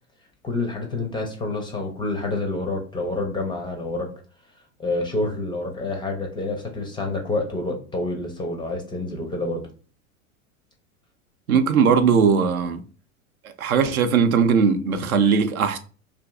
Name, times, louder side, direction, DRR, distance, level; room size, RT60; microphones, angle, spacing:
voice 1, 0.4-4.1 4.8-9.6, left 2 dB, 10° left, 0.4 m, -28 dB
voice 2, 11.5-12.8 13.6-15.8, right 6 dB, 75° right, 0.6 m, -19 dB
2.5 x 2.5 x 3.4 m
figure-of-eight pair, 85°, 43 cm